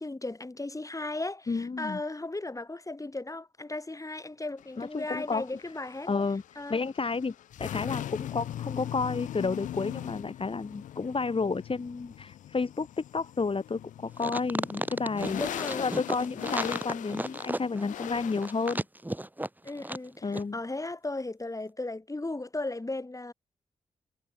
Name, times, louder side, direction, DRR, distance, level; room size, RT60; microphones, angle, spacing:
voice 1, 0.0-6.1 6.6-6.8 15.4-15.8 19.6-23.3, left 2 dB, 25° left, 5.8 m, -36 dB
voice 2, 1.5-2.0 4.8-5.5 6.1-6.4 6.7-7.3 7.6-12.9 13.1-15.4 15.8-18.8 20.2-20.5, left 4 dB, 45° left, 3.7 m, -31 dB
sound 1, 4.6-18.8, left 12 dB, 85° left, 2.1 m, -40 dB
sound 2, 14.2-20.1 20.3-20.4, right 1 dB, 15° right, 2.1 m, -34 dB
supercardioid pair, 40°, 13 cm